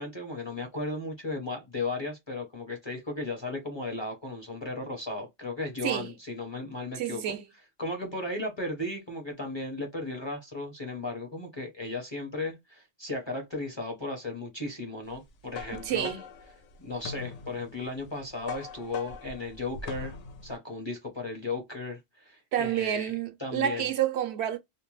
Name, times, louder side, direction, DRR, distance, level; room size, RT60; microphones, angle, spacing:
voice 1, 0.0-7.2 7.8-16.1 16.8-20.2 20.4-23.1 23.4-23.9, left 2 dB, 30° left, 0.6 m, -35 dB
voice 2, 6.9-7.5 15.7-16.2 22.5-24.6, right 10 dB, 70° right, 0.8 m, -29 dB
sound 1, 15.1-20.6, left 4 dB, 85° left, 0.9 m, -42 dB
2.6 x 2.1 x 3.0 m
omnidirectional pair, 1.2 m